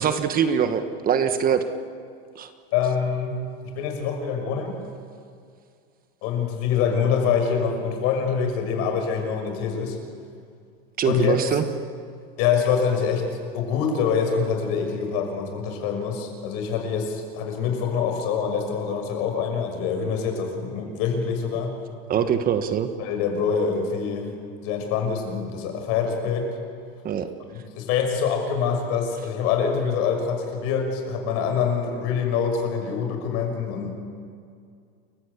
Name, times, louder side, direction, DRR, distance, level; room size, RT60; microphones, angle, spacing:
voice 1, 0.0-1.6 2.3-2.5 11.0-11.6 22.1-22.9 27.0-27.3, right 8 dB, 30° right, 9 dB, 1.3 m, -23 dB
voice 2, 2.7-3.5 3.7-4.8 6.2-10.0 11.0-11.3 12.4-13.3 13.5-21.8 23.0-24.3 24.6-26.5 27.7-34.0, left 6 dB, 55° left, 4 dB, 6.1 m, -25 dB
29.5 x 15.0 x 8.5 m, 2.3 s
supercardioid pair, 135°, 29 cm